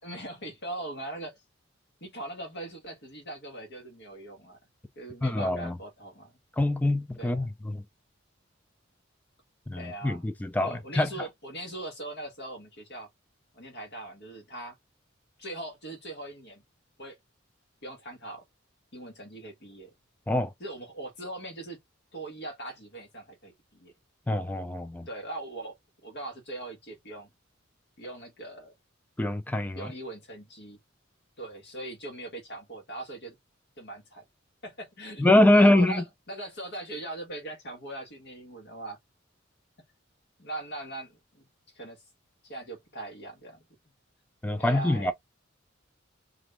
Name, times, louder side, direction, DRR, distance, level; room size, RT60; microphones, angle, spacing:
voice 1, 0.0-1.4 2.0-4.6 5.0-6.4 7.2-7.5 9.8-10.3 10.6-13.1 13.5-14.8 15.4-16.6 17.0-17.2 17.8-18.4 18.9-19.9 20.6-21.8 22.1-23.9 25.1-25.8 26.0-27.3 28.0-28.7 29.7-30.8 31.4-33.4 33.8-34.2 34.6-39.0 40.4-41.5 41.7-42.0 42.4-43.6 44.5-45.1, right 1 dB, 60° left, 1.3 m, -40 dB
voice 2, 5.2-5.8 6.6-7.8 9.7-11.3 20.3-20.5 24.3-25.1 29.2-29.9 35.2-36.0 44.4-45.1, left 1 dB, 10° left, 0.3 m, -24 dB
2.5 x 2.5 x 3.2 m
head